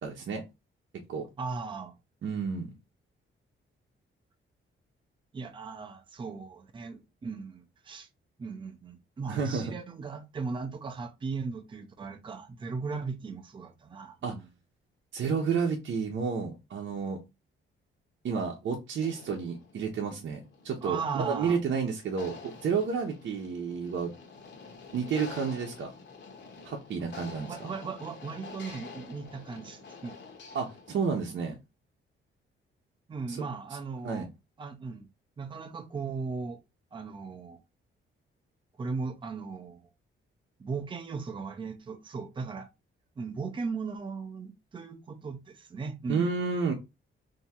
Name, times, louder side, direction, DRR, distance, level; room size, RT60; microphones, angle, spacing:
voice 1, 0.0-0.4 0.9-1.3 2.2-2.7 9.3-9.7 14.2-14.3 15.1-17.2 18.2-24.1 24.9-25.9 26.6-27.6 30.5-31.6 33.3-33.4 34.0-34.3 46.1-46.7, right 5 dB, 60° right, 0.8 m, -31 dB
voice 2, 1.4-2.0 5.3-8.1 8.4-14.5 20.8-21.6 27.4-30.2 33.1-34.3 34.6-35.1 35.4-36.6 36.9-37.6 38.8-39.8 40.6-42.7 43.2-46.3, right 4 dB, 25° right, 0.5 m, -37 dB
sound 1, 19.0-31.3, left 4 dB, 55° left, 1.0 m, -48 dB
3.5 x 2.8 x 4.2 m
wide cardioid pair, 180°, 21 cm